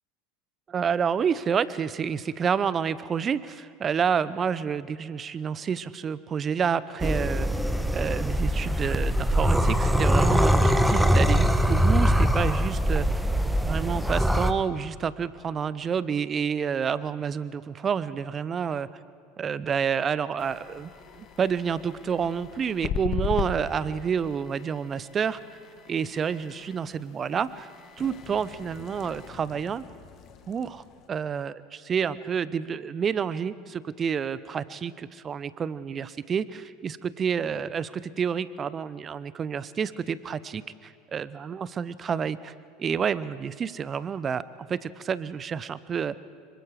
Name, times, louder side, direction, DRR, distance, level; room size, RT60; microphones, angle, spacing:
voice 1, 0.7-7.5 7.9-13.2 13.6-18.9 19.4-20.9 21.1-25.4 25.9-27.7 28.0-29.8 30.5-42.5 42.8-46.2, right 7 dB, 30° right, 17 dB, 0.8 m, -29 dB
sound 1, 7.0-14.5, equal, 5° right, 1.2 m, -22 dB
sound 2, 20.4-31.1, left 7 dB, 40° left, 1.5 m, -39 dB
26.0 x 24.0 x 4.9 m, 2.4 s
figure-of-eight pair, 75°, 0 cm